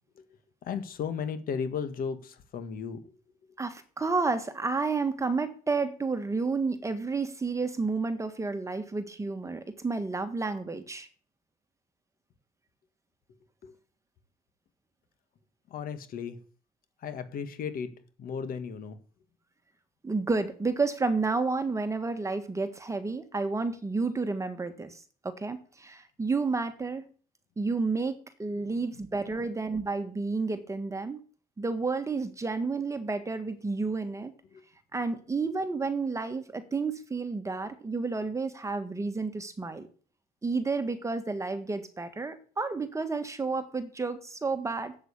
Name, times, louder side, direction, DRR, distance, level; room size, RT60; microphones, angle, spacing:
voice 1, 0.7-3.0 13.6-13.7 15.7-16.4 17.0-17.9 18.2-19.0 28.6-28.7 34.5-34.6, left 6 dB, 60° left, 1.7 m, -35 dB
voice 2, 3.6-11.1 20.0-27.1 27.6-31.2 31.6-34.3 34.9-39.9 40.4-45.0, right 4 dB, 15° right, 1.6 m, -31 dB
7.9 x 7.9 x 8.3 m
cardioid pair, 110°, 17 cm